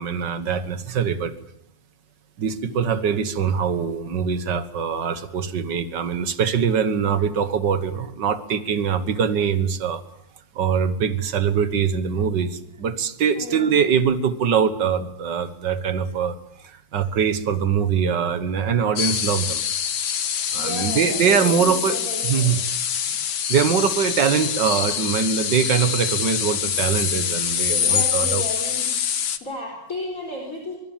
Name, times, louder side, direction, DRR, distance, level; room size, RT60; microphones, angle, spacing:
voice 1, 0.0-1.3 2.4-10.0 10.6-16.4 16.9-19.6 20.5-22.6 23.5-28.5, right 7 dB, 80° right, 12 dB, 2.0 m, -23 dB
voice 2, 13.4-13.7 20.5-22.7 27.7-28.9 29.4-30.8, left 1 dB, 45° left, 1 dB, 4.5 m, -33 dB
sound 1, 19.0-29.4, left 8 dB, 75° left, 1.8 m, -25 dB
24.5 x 23.5 x 7.4 m, 0.76 s
omnidirectional pair, 1.9 m